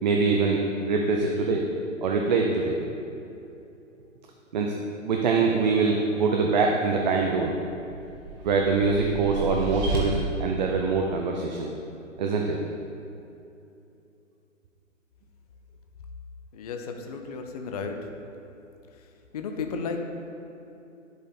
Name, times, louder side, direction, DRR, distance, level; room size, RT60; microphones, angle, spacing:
voice 1, 0.0-1.6 2.0-2.8 4.5-4.8 5.0-7.6 8.4-11.7 12.2-12.6, right 4 dB, 35° right, 1 dB, 0.6 m, -24 dB
sound 1, 7.6-10.0, right 3 dB, 20° right, 1.3 m, -34 dB
voice 2, 16.5-18.1 18.9-20.0, left 5 dB, 30° left, 4 dB, 0.5 m, -34 dB
11.0 x 5.0 x 4.3 m, 2.8 s
figure-of-eight pair, 130°, 39 cm